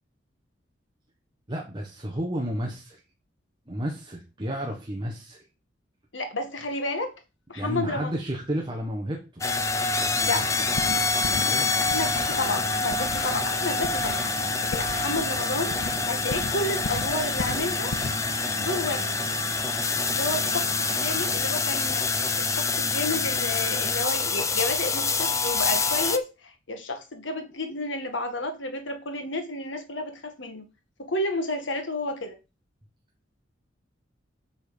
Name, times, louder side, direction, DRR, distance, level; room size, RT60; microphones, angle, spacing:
voice 1, 1.5-3.0 3.7-5.5 7.5-9.5 10.0-10.5 11.2-11.8, equal, 25° right, 1.5 m, -32 dB
voice 2, 6.1-7.1 7.5-8.1 10.2-10.5 11.8-14.3 14.6-15.8 16.1-17.9 18.6-19.1 20.1-30.7 31.0-32.4, left 2 dB, 75° left, 1.9 m, -31 dB
sound 1, 9.4-26.2, left 4 dB, 15° left, 0.6 m, -26 dB
sound 2, 10.4-21.4, right 5 dB, 80° right, 1.2 m, -40 dB
sound 3, 10.8-11.5 11.9-13.5 13.8-15.3 15.7-16.0 16.3-18.2, left 5 dB, 60° left, 0.4 m, -35 dB
8.1 x 4.2 x 6.8 m
head